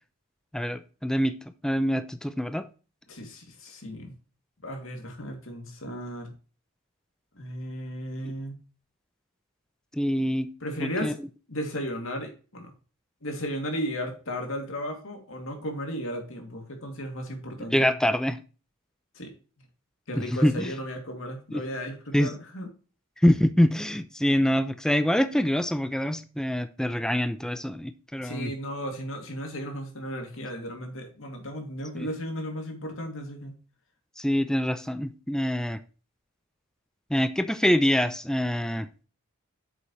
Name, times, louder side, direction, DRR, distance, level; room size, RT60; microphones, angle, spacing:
voice 1, 0.5-1.3 1.6-2.7 9.9-10.5 10.8-11.1 17.7-18.4 20.2-20.7 21.5-21.6 22.1-22.3 23.2-28.5 32.0-32.1 34.2-35.8 37.1-38.9, equal, 5° left, 0.5 m, -25 dB
voice 2, 3.1-4.2 4.6-6.3 7.4-8.6 10.6-11.2 11.5-12.7 13.2-17.9 19.1-19.3 20.1-22.7 28.2-33.5, equal, 65° left, 2.5 m, -35 dB
8.8 x 7.0 x 3.1 m
head